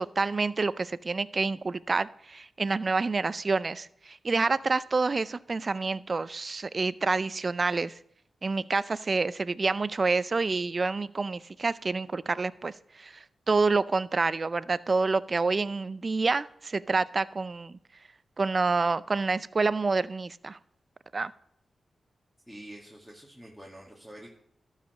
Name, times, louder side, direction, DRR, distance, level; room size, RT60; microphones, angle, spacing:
voice 1, 0.0-7.9 8.4-13.2 13.5-17.8 18.4-20.6 21.1-21.3, right 3 dB, 45° right, 18 dB, 0.4 m, -28 dB
voice 2, 22.5-24.3, right 1 dB, 5° left, -3 dB, 2.0 m, -47 dB
12.5 x 4.9 x 6.7 m, 0.69 s
supercardioid pair, 45°, 0 cm